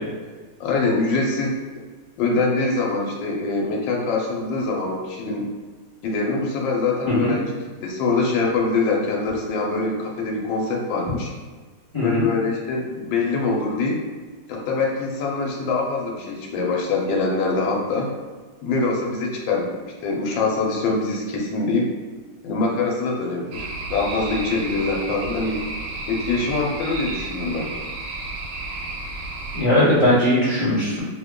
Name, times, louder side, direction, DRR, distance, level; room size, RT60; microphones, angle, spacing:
voice 1, 0.6-1.6 2.2-5.5 6.0-7.5 7.8-11.3 12.0-14.0 14.5-18.1 18.6-21.9 22.4-25.6 26.1-27.7, left 3 dB, 80° left, -1 dB, 1.4 m, -24 dB
voice 2, 11.9-12.3 29.5-31.0, left 1 dB, 20° left, -12 dB, 0.9 m, -19 dB
sound 1, 23.5-29.6, right 2 dB, 85° right, 1.3 m, -32 dB
3.1 x 2.2 x 3.6 m, 1.4 s
omnidirectional pair, 2.0 m